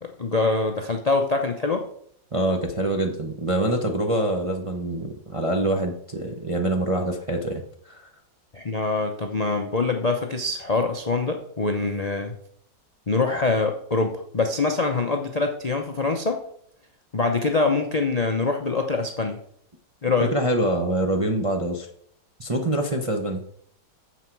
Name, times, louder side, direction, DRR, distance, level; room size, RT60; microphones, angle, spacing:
voice 1, 0.0-1.9 8.5-12.3 13.1-16.4 17.1-19.4 20.0-20.3, left 3 dB, 45° left, 3 dB, 0.5 m, -24 dB
voice 2, 2.3-8.1 20.3-21.9 22.4-23.4, right 1 dB, 30° right, 2 dB, 0.6 m, -25 dB
9.9 x 7.3 x 4.6 m, 0.67 s
omnidirectional pair, 1.9 m